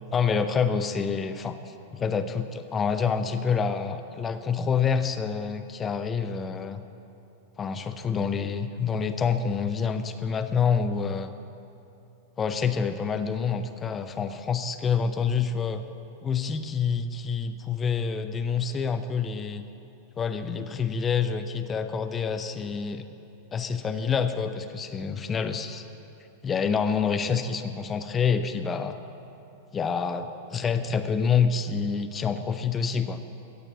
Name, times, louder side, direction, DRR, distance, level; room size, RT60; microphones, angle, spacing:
voice 1, 0.1-6.8 7.6-11.3 12.4-15.8 16.2-19.6 20.2-23.0 23.5-25.8 26.4-29.0 29.7-33.2, left 6 dB, 20° left, 9 dB, 0.7 m, -27 dB
16.5 x 6.7 x 7.8 m, 2.8 s
figure-of-eight pair, 90°, 0 cm